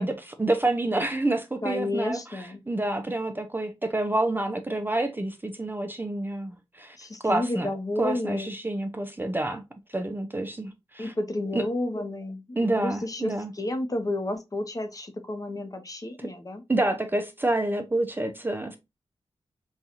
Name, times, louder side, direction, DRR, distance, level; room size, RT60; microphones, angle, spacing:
voice 1, 0.0-7.0 7.2-7.7 8.0-9.6 9.9-11.1 11.5-11.6 12.6-13.5 16.2-16.3 16.7-18.8, right 2 dB, 20° right, 0.4 m, -28 dB
voice 2, 1.6-2.6 7.0-8.5 11.0-16.6, left 1 dB, 35° left, 0.7 m, -31 dB
4.1 x 2.3 x 2.6 m
wide cardioid pair, 80°, 11 cm